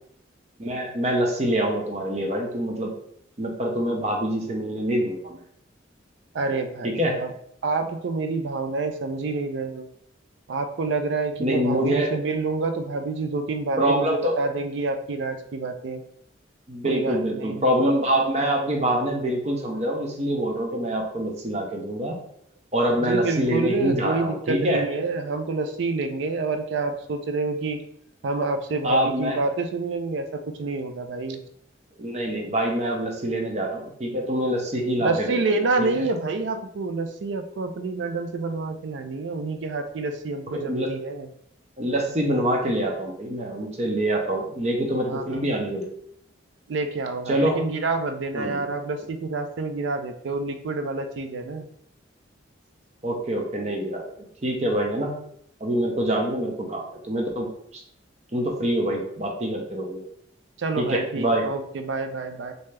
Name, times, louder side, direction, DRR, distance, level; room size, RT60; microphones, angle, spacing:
voice 1, 0.6-2.9 3.4-5.4 6.8-7.2 11.4-12.1 13.8-14.4 16.7-22.2 22.7-24.9 28.8-29.4 32.0-35.3 35.8-35.9 40.5-40.9 41.8-45.9 47.3-47.6 48.3-48.7 53.0-54.0 54.4-55.2 55.6-57.8 58.3-60.0 60.8-61.4, right 1 dB, 35° right, 0 dB, 0.7 m, -25 dB
voice 2, 6.3-7.3 7.6-9.9 10.5-16.0 16.8-17.6 23.0-27.8 28.2-31.4 35.0-41.3 45.1-45.4 46.7-51.7 60.6-62.5, right 3 dB, 70° right, 7 dB, 0.4 m, -28 dB
3.3 x 2.7 x 3.2 m, 0.68 s
head